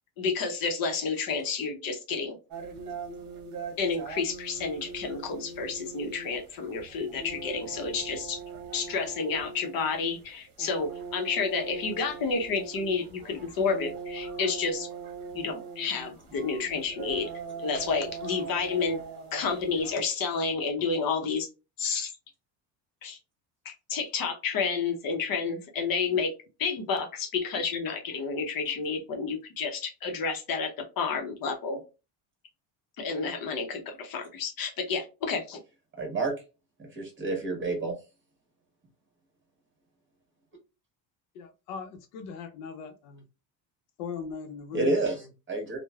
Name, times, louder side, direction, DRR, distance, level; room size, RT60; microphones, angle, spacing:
voice 1, 0.2-2.4 3.8-8.4 8.7-14.9 15.3-17.3 17.6-19.0 19.3-21.5 21.8-22.1 23.0-23.2 23.6-26.3 26.6-31.8 33.0-35.6, left 5 dB, 45° left, 4 dB, 0.7 m, -30 dB
sound 1, 2.5-20.0, right 4 dB, 45° right, 1.0 m, -41 dB
voice 2, 36.0-36.3 36.8-37.9 44.7-45.2 45.5-45.8, right 2 dB, 25° right, 2 dB, 1.3 m, -28 dB
voice 3, 41.3-43.2 44.0-45.3, left 6 dB, 90° left, 6 dB, 0.7 m, -39 dB
3.0 x 2.2 x 2.3 m, 0.29 s
cardioid pair, 115°, 47 cm